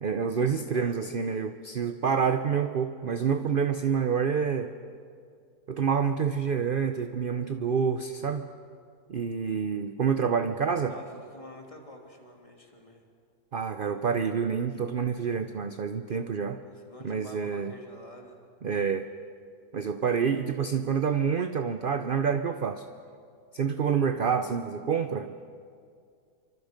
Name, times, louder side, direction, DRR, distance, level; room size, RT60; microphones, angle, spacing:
voice 1, 0.0-4.7 5.7-8.5 9.1-11.0 13.5-16.6 17.0-17.7 18.6-19.1 19.7-22.8 23.5-25.3, right 6 dB, 50° right, 9 dB, 0.6 m, -27 dB
voice 2, 10.9-13.0 16.6-18.4, equal, 20° left, 1 dB, 2.8 m, -47 dB
28.0 x 25.0 x 5.2 m, 2.3 s
omnidirectional pair, 1.7 m